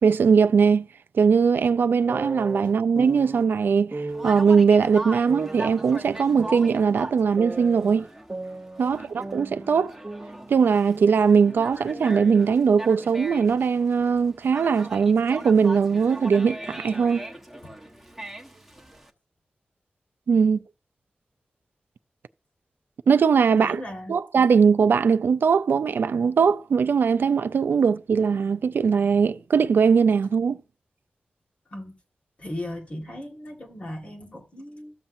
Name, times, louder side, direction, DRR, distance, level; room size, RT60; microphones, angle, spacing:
voice 1, 0.0-0.9 1.1-8.1 8.8-10.0 10.5-17.3 20.3-20.6 23.1-23.8 24.1-30.6, right 6 dB, 85° right, 0.4 m, -20 dB
sound 1, 2.1-3.4 3.9-4.4 5.3-6.9 7.4-8.9 9.2-11.4 11.6-13.2, right 2 dB, 30° right, 0.8 m, -37 dB
Conversation, 4.1-19.1, right 1 dB, 5° right, 1.1 m, -40 dB
voice 2, 23.5-24.2 31.7-31.9 32.4-34.9, left 1 dB, 40° left, 1.7 m, -37 dB
13.5 x 7.2 x 2.6 m
wide cardioid pair, 110°, 3 cm